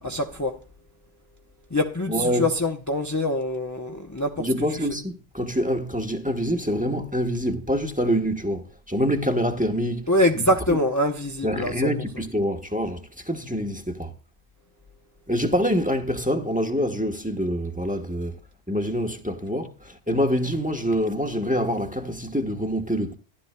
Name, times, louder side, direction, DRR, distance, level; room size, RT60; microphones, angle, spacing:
voice 1, 0.0-0.6 1.7-4.5 10.1-11.9, left 1 dB, 20° left, 0.8 m, -24 dB
voice 2, 2.1-2.5 4.4-10.1 10.4-10.8 11.4-14.1 15.3-18.3 18.7-23.1, equal, 10° right, 1.1 m, -26 dB
15.5 x 11.5 x 2.2 m
omnidirectional pair, 1.0 m